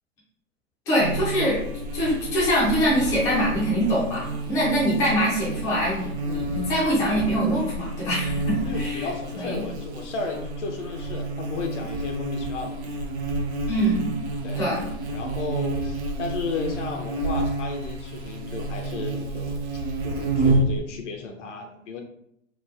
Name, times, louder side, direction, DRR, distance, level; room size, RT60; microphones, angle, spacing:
voice 1, 0.9-1.6 1.9-9.1 9.3-9.6 13.7-14.1 14.6-14.9, equal, 10° left, -7 dB, 0.4 m, -24 dB
Buzz, 1.0-20.8, right 2 dB, 55° right, 0.6 m, -29 dB
voice 2, 8.6-13.1 14.4-14.6 15.1-19.6 20.0-22.0, left 4 dB, 60° left, 3 dB, 0.7 m, -34 dB
3.0 x 2.2 x 2.4 m, 0.74 s
hypercardioid pair, 120°, 41 cm